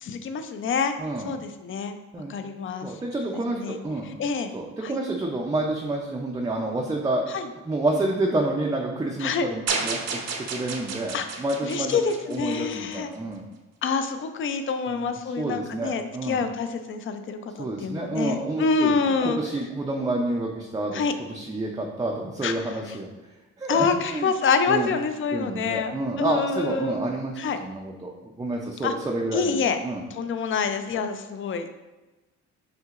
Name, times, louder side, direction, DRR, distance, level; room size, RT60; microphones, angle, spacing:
voice 1, 0.0-0.9 1.2-2.0 2.3-2.9 3.3-3.8 4.2-4.5 4.8-5.0 7.3-7.5 9.2-9.5 11.1-11.3 11.6-13.1 13.8-19.4 20.9-21.1 22.4-22.5 23.7-27.1 27.4-27.6 28.8-28.9 29.3-29.8 30.1-31.7, left 5 dB, 45° left, 8 dB, 0.4 m, -27 dB
voice 2, 1.0-1.3 2.1-2.3 2.8-4.1 4.5-7.3 7.6-10.2 10.5-12.0 12.2-13.4 14.9-16.4 17.6-19.0 19.2-23.1 23.6-24.3 24.7-24.9 25.3-29.6 29.8-30.0 30.9-31.0, right 2 dB, 15° right, -1 dB, 0.4 m, -29 dB
sound 1, 9.7-13.0, right 4 dB, 60° right, 0.7 m, -31 dB
5.8 x 2.7 x 2.4 m, 1.1 s
cardioid pair, 90°, 30 cm